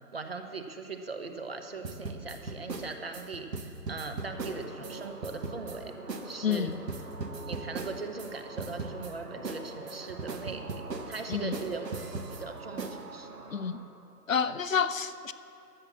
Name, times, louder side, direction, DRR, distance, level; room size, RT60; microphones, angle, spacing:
voice 1, 0.1-5.9 6.2-6.8 7.5-13.3, right 4 dB, 40° right, 6 dB, 0.8 m, -40 dB
sound 1, 1.8-4.9 5.2-5.8 6.1-6.2 6.5-8.3 8.6-9.1 9.4-12.4 12.8-13.0, right 3 dB, 85° right, 1.4 m, -38 dB
sound 2, 4.1-13.8, right 3 dB, 70° right, 2.3 m, -46 dB
voice 2, 6.4-6.8 11.3-11.5 13.5-13.8 14.3-15.3, left 6 dB, 55° left, 13 dB, 0.6 m, -29 dB
12.5 x 7.3 x 7.0 m, 2.9 s
hypercardioid pair, 170°, 48 cm